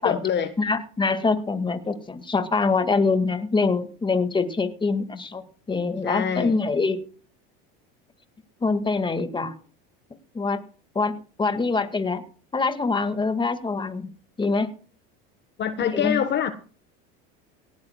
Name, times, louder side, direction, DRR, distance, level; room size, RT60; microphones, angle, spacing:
voice 1, 0.0-0.5 6.0-6.5 15.6-16.5, left 9 dB, 40° left, 10 dB, 1.2 m, -25 dB
voice 2, 0.6-5.4 5.7-7.0 8.6-9.5 10.3-10.6 11.0-12.2 12.5-14.1 14.4-14.7 15.9-16.2, left 4 dB, 15° left, 9 dB, 1.9 m, -24 dB
18.0 x 16.0 x 2.3 m, 0.40 s
supercardioid pair, 100°, 29 cm